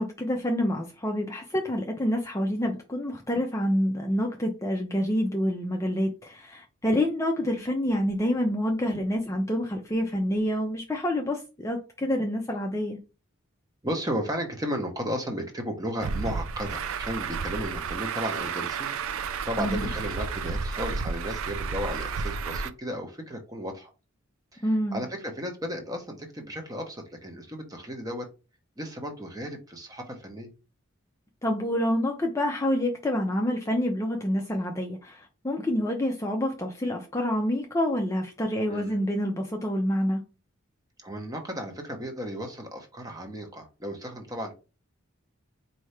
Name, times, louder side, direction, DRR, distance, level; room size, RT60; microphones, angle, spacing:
voice 1, 0.0-13.0 19.6-19.9 24.6-25.0 31.4-40.2, left 1 dB, 15° left, 0.4 m, -27 dB
voice 2, 13.8-18.9 19.4-23.9 24.5-28.3 28.8-30.5 38.7-39.0 41.0-44.5, equal, 15° right, 0.8 m, -34 dB
Truck, 16.0-22.7, right 5 dB, 70° right, 0.4 m, -32 dB
4.5 x 2.7 x 3.2 m
head